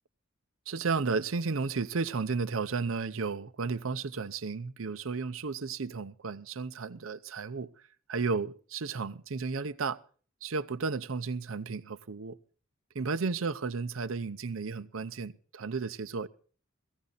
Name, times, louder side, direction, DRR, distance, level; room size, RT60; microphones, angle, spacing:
voice 1, 0.7-7.7 8.1-10.0 10.4-12.4 12.9-16.3, right 4 dB, 70° right, 0.7 m, -33 dB
17.0 x 15.0 x 4.0 m
head